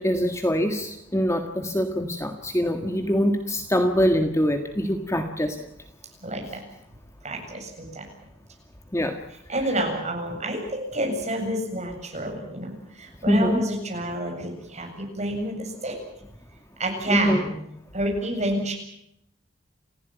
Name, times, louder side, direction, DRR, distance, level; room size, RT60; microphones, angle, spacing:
voice 1, 0.0-5.6 8.9-9.2 13.3-13.6 17.1-17.4, equal, 15° left, 5 dB, 1.7 m, -24 dB
voice 2, 6.2-6.6 7.2-8.1 9.5-16.0 16.8-17.6 17.9-18.7, right 1 dB, 35° right, 2 dB, 7.9 m, -29 dB
28.5 x 16.0 x 9.3 m, 0.77 s
head